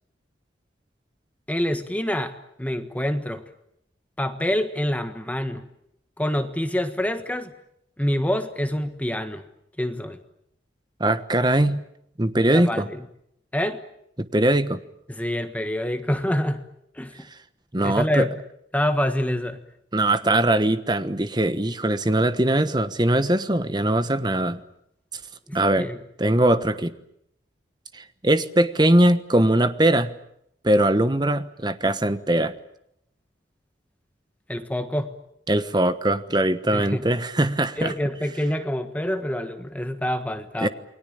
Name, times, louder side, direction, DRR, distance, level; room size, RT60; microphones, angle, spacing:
voice 1, 1.5-3.4 4.2-5.6 6.2-7.5 8.0-9.4 9.8-10.2 12.5-13.0 13.5-13.8 15.1-16.7 16.9-17.1 17.8-18.4 18.7-19.6 25.5-26.0 34.5-35.1 36.7-37.0 37.8-40.7, equal, 10° left, 8 dB, 1.4 m, -26 dB
voice 2, 11.0-11.8 12.2-12.9 14.2-14.8 17.7-18.3 19.9-24.6 25.5-25.9 26.2-26.9 27.9-30.1 30.6-32.5 35.5-37.9 40.6-40.7, right 1 dB, 25° right, 12 dB, 1.2 m, -21 dB
29.0 x 21.5 x 8.8 m, 0.76 s
head